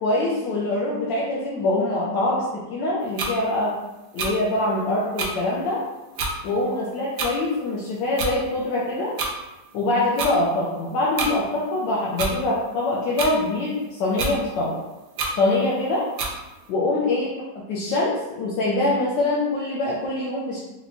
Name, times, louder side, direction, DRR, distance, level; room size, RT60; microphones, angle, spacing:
voice 1, 0.0-3.8 4.1-5.8 6.4-9.1 9.7-14.8 15.4-16.1 16.7-20.6, left 2 dB, 75° left, -5 dB, 1.2 m, -24 dB
sound 1, 3.2-3.3 4.2-4.3 5.2-5.3 6.2-6.3 7.2-7.3 8.2-8.3 9.2-9.3 10.2-10.3 11.2-11.3 12.2-12.3 13.2-13.3 14.2-14.3 15.2-15.3 16.2-16.3, right 3 dB, 80° right, 0.8 m, -26 dB
4.6 x 2.1 x 2.6 m, 1.0 s
omnidirectional pair, 2.1 m